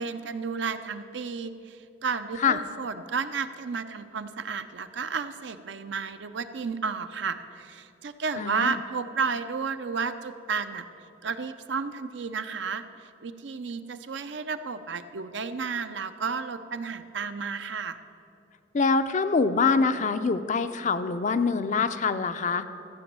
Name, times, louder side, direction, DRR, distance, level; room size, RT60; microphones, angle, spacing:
voice 1, 0.0-10.8 11.2-18.0, right 5 dB, 70° right, 10 dB, 0.5 m, -32 dB
voice 2, 8.4-8.8 18.7-22.7, left 4 dB, 40° left, 11 dB, 0.4 m, -24 dB
14.0 x 5.3 x 8.7 m, 2.6 s
head